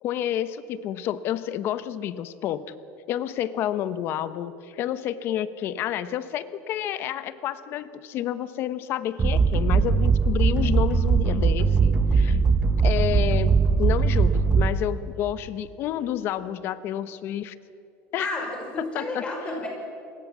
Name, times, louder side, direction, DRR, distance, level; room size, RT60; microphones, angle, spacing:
voice 1, 0.0-2.6 3.1-12.4 12.8-17.6 18.1-18.3 18.8-19.2, left 11 dB, 45° left, 14 dB, 1.0 m, -29 dB
sound 1, 9.2-15.0, right 5 dB, 20° right, 0.9 m, -20 dB
voice 2, 18.2-19.7, left 2 dB, 20° left, 1 dB, 5.6 m, -31 dB
28.0 x 20.0 x 7.4 m, 2.6 s
cardioid pair, 160°, 5 cm